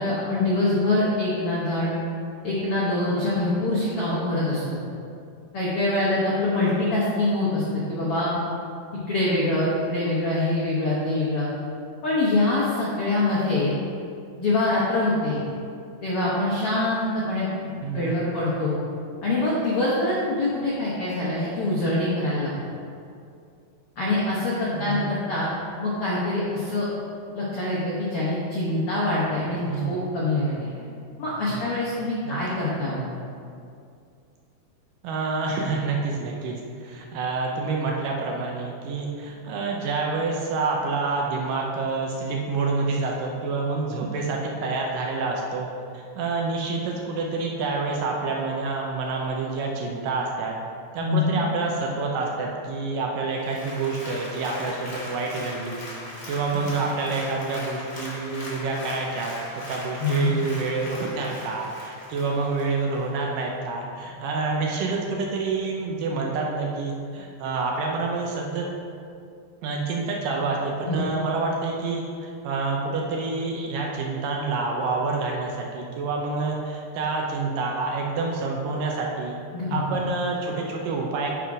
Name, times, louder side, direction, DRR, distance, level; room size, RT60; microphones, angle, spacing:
voice 1, 0.0-1.9 2.4-4.8 5.5-8.3 9.1-11.5 12.0-13.7 14.4-15.4 16.0-17.5 17.9-18.8 19.2-22.5 24.0-25.5 25.8-26.9 27.3-30.7 31.2-33.0 51.0-51.4 60.0-60.3 70.8-71.0 79.5-80.0, left 2 dB, 75° left, -7 dB, 1.3 m, -24 dB
voice 2, 17.8-18.3 24.7-25.1 29.7-30.0 30.4-31.0 31.5-31.7 32.3-32.4 35.0-45.7 45.9-50.6 50.9-55.8 56.3-59.3 59.7-68.7 69.6-79.4 79.7-81.3, right 3 dB, 75° right, -1 dB, 2.2 m, -28 dB
Applause, 53.3-63.1 63.5-63.6, left 1 dB, 45° left, 1.6 m, -39 dB
10.0 x 3.6 x 4.8 m, 2.4 s
omnidirectional pair, 4.3 m